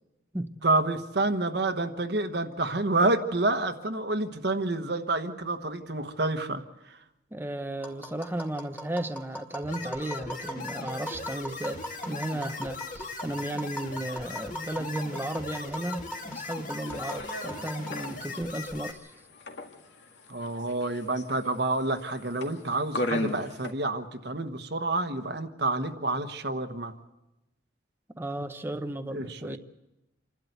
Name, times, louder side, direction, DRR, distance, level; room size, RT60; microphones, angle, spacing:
voice 1, 0.6-7.0 20.3-26.9 29.1-29.6, right 2 dB, 60° right, 7 dB, 1.2 m, -28 dB
voice 2, 7.3-19.1 28.2-29.6, right 1 dB, 10° right, 8 dB, 0.7 m, -34 dB
Tap, 7.8-18.3, equal, 10° left, 2.2 m, -41 dB
sound 1, 9.6-18.9, left 3 dB, 40° left, 2.1 m, -39 dB
sound 2, 16.8-23.7, left 1 dB, 70° left, 2.1 m, -37 dB
27.5 x 12.5 x 8.1 m, 0.97 s
head